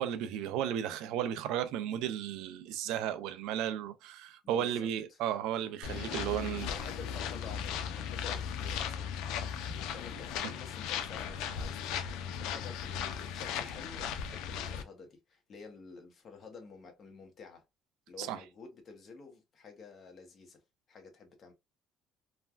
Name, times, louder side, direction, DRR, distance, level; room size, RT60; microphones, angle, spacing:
voice 1, 0.0-6.7 10.4-10.5 18.2-18.4, right 10 dB, 90° right, 0.4 m, -34 dB
voice 2, 4.4-5.2 6.4-9.1 9.8-17.6 18.1-20.6 20.9-21.5, left 5 dB, 40° left, 0.9 m, -50 dB
sound 1, 5.8-14.8, left 8 dB, 90° left, 0.4 m, -37 dB
3.2 x 2.2 x 2.4 m
cardioid pair, 130°, 0 cm